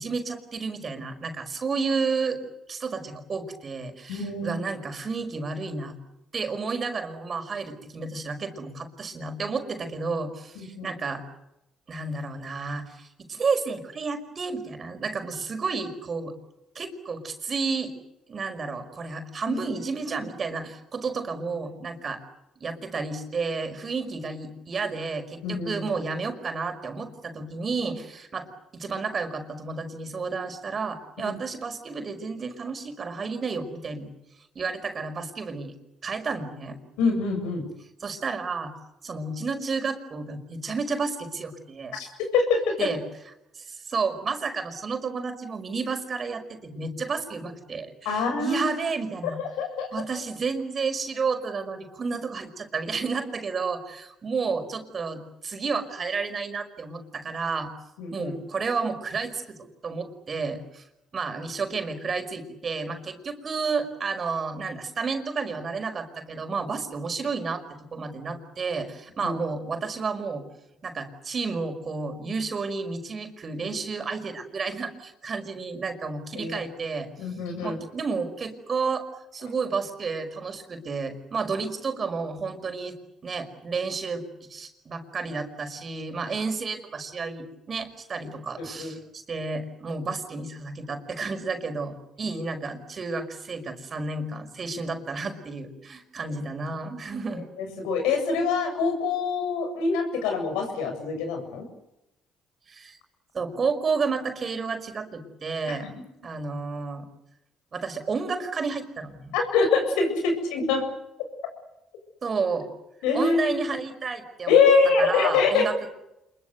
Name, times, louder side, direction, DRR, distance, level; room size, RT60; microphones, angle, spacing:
voice 1, 0.0-2.4 2.7-6.0 6.3-11.2 11.9-16.3 16.8-17.9 18.3-22.2 22.6-34.1 34.6-35.7 36.0-36.8 38.0-38.7 39.0-41.9 42.8-43.0 43.5-49.4 49.9-57.7 58.1-60.8 61.1-70.4 70.8-77.3 77.6-79.1 79.3-83.0 83.2-84.2 84.5-97.5 102.7-103.0 103.3-105.9 106.2-107.1 107.7-109.3 112.2-112.7 113.1-114.7 115.0-115.9, right 4 dB, 45° right, 7 dB, 5.4 m, -31 dB
voice 2, 4.1-4.5 10.6-10.9 19.4-19.6 25.4-25.9 31.2-31.4 37.0-37.6 41.9-42.1 42.3-42.9 48.0-48.7 49.4-49.9 58.0-58.3 69.2-69.3 76.4-76.6 77.2-77.8 88.6-88.9 92.3-92.4 97.3-101.7 105.7-105.9 109.3-110.9 113.0-113.4 114.5-115.7, left 4 dB, 85° left, 5 dB, 7.5 m, -24 dB
27.0 x 22.5 x 8.2 m, 0.89 s
supercardioid pair, 60°, 0 cm